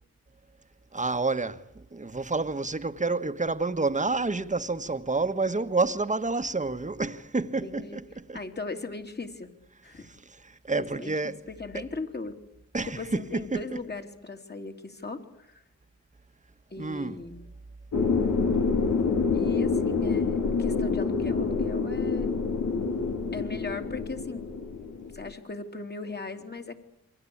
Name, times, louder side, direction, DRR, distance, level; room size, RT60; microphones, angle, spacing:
voice 1, 0.9-8.4 9.9-11.4 11.7-11.8 12.7-13.8 16.8-17.2, right 3 dB, 25° right, 1.5 m, -29 dB
voice 2, 7.4-8.0 8.3-9.5 9.8-10.1 10.8-12.4 12.9-15.6 16.7-17.4 19.3-22.3 23.3-24.5 25.1-26.8, left 3 dB, 35° left, 3.2 m, -38 dB
sound 1, 17.9-25.3, left 4 dB, 85° left, 2.9 m, -27 dB
28.0 x 24.0 x 8.7 m
wide cardioid pair, 85°, 29 cm